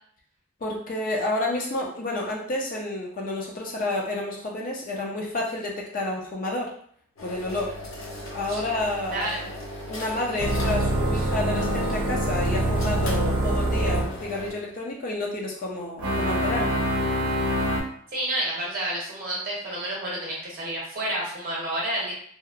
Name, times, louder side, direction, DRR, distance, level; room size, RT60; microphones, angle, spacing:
voice 1, 0.6-6.7 7.2-7.8 8.3-9.3 9.9-16.8, left 2 dB, 40° left, -1 dB, 0.4 m, -30 dB
sound 1, 7.2-14.5, left 1 dB, 70° left, 0.7 m, -38 dB
voice 2, 9.1-9.4 18.1-22.2, right 1 dB, 40° right, -4 dB, 0.7 m, -30 dB
sound 2, 10.4-14.1 16.0-17.8, right 1 dB, 75° right, 0.6 m, -25 dB
2.8 x 2.0 x 2.4 m, 0.63 s
head